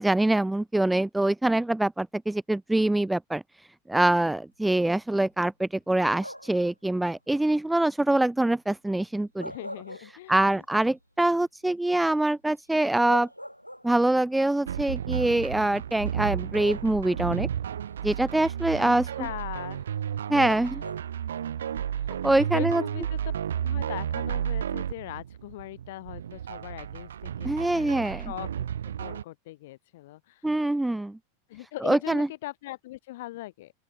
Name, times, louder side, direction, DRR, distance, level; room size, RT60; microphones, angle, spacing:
voice 1, 0.0-3.4 3.9-9.5 10.3-13.3 13.8-17.5 18.0-19.0 20.3-20.8 22.2-22.8 27.4-28.3 30.4-31.2 31.8-32.3, right 1 dB, 5° right, 0.3 m, -24 dB
sound 1, 6.2-6.7 9.2-10.6 11.0-11.1 12.6-12.7 13.1-14.2 15.2-15.4 16.6-17.3 20.4-21.3, equal, 90° left, 3.5 m, -41 dB
voice 2, 9.4-10.6 18.2-18.3 18.8-19.9 20.3-20.8 21.9-22.1 22.5-23.2 23.6-28.5 28.8-30.8 31.5-33.7, left 17 dB, 55° left, 1.2 m, -40 dB
sound 2, 14.7-29.2, right 9 dB, 65° right, 0.5 m, -32 dB
open air
figure-of-eight pair, 90°, 0 cm